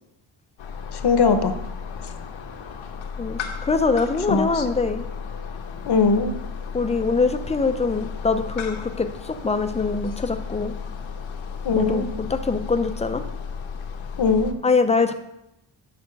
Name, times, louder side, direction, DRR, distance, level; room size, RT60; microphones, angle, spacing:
sound 1, 0.6-14.5, left 6 dB, 80° left, 1.0 m, -34 dB
voice 1, 0.9-1.5 4.3-4.6 5.9-6.3 11.6-12.1 14.2-14.6, left 5 dB, 55° left, 8 dB, 0.9 m, -20 dB
voice 2, 3.2-5.1 6.7-10.7 11.8-13.2 14.6-15.1, left 4 dB, 15° left, 8 dB, 0.4 m, -23 dB
6.9 x 5.5 x 6.7 m, 0.84 s
wide cardioid pair, 180°, 46 cm